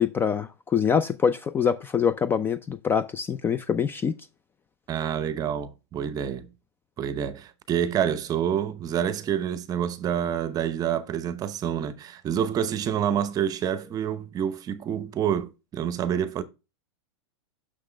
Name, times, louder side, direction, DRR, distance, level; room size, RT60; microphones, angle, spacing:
voice 1, 0.0-4.1, left 7 dB, 15° left, 0.3 m, -24 dB
voice 2, 4.9-6.5 7.0-16.4, right 9 dB, 25° right, 0.7 m, -27 dB
6.5 x 5.9 x 3.2 m
supercardioid pair, 135°, 15 cm